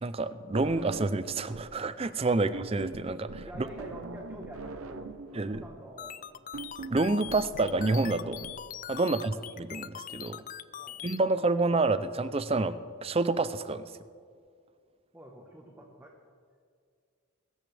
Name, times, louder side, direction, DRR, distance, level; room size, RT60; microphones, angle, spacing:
voice 1, 0.0-3.5 5.3-5.6 6.9-8.4 8.9-9.3 9.6-10.4 11.0-13.9, right 3 dB, 25° right, 13 dB, 0.5 m, -28 dB
sound 1, 0.5-1.8 2.1-8.5, right 3 dB, 70° right, 0.8 m, -42 dB
voice 2, 3.4-6.3 9.0-9.4 10.8-11.1 15.1-16.1, right 1 dB, 10° right, -1 dB, 1.1 m, -47 dB
sound 2, 6.0-11.2, left 10 dB, 35° left, 0.3 m, -42 dB
23.0 x 14.0 x 3.4 m, 2.1 s
head